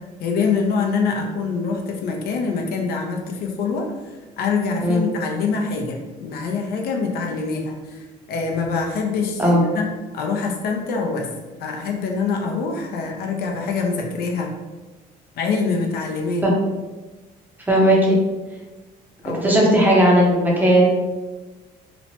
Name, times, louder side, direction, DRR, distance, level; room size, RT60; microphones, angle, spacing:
voice 1, 0.2-3.9 4.4-9.9 10.1-11.3 11.6-14.5 15.4-16.4 19.2-19.4, left 4 dB, 65° left, 1 dB, 0.5 m, -24 dB
voice 2, 17.7-18.2 19.4-20.9, equal, 10° right, -3 dB, 0.7 m, -16 dB
3.0 x 2.1 x 2.7 m, 1.2 s
cardioid pair, 110°, 17 cm